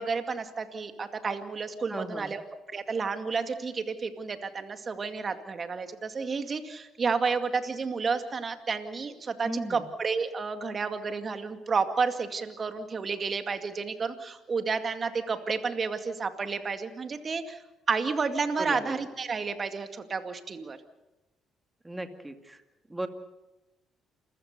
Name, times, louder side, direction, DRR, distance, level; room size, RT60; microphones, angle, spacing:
voice 1, 0.0-2.4 2.7-17.6 17.9-20.8, right 5 dB, 40° right, 8 dB, 2.2 m, -31 dB
voice 2, 1.9-2.4 9.4-9.8 18.6-18.9 21.8-22.6 22.9-23.1, right 1 dB, 15° right, 7 dB, 2.2 m, -35 dB
28.5 x 15.0 x 6.8 m, 1.0 s
supercardioid pair, 70°, 0 cm